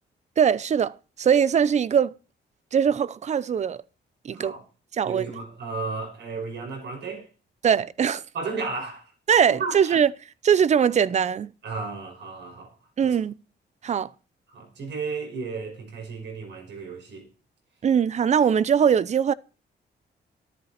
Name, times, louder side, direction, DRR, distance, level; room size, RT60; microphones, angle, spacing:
voice 1, 0.4-2.1 2.7-3.8 4.2-4.5 5.0-5.3 7.6-8.2 9.3-10.1 10.4-11.5 13.0-13.3 13.8-14.1 17.8-19.3, right 7 dB, 40° right, 0.6 m, -21 dB
voice 2, 4.3-4.6 5.0-7.3 8.3-9.1 9.5-10.0 11.6-12.7 13.0-13.2 14.5-17.3, right 4 dB, 75° right, 5.8 m, -34 dB
14.0 x 13.0 x 4.3 m
wide cardioid pair, 150°, 18 cm